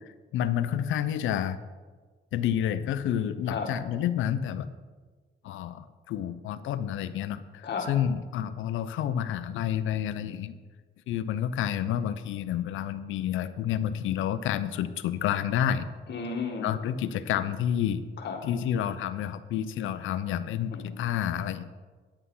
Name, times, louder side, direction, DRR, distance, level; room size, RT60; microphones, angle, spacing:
voice 1, 0.3-1.6 2.3-4.7 5.4-10.6 11.1-15.9 16.6-18.0 18.4-21.7, left 10 dB, 80° left, 12 dB, 0.6 m, -29 dB
voice 2, 16.1-16.7 18.2-18.4 20.7-20.9, left 5 dB, 60° left, 3 dB, 2.0 m, -33 dB
9.9 x 8.2 x 5.6 m, 1.4 s
cardioid pair, 90°, 20 cm